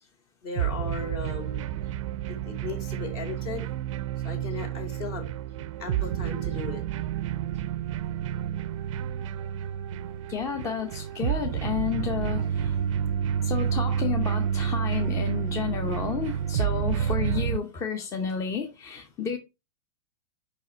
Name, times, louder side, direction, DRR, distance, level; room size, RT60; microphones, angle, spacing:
voice 1, 0.4-1.6 2.3-3.7 4.2-5.3 5.8-6.8, left 4 dB, 50° left, 2.5 m, -36 dB
sound 1, 0.6-17.6, right 9 dB, 60° right, 0.5 m, -29 dB
voice 2, 10.3-12.8 13.4-19.4, left 7 dB, 15° left, 0.7 m, -31 dB
5.2 x 4.6 x 4.4 m
hypercardioid pair, 130°, 18 cm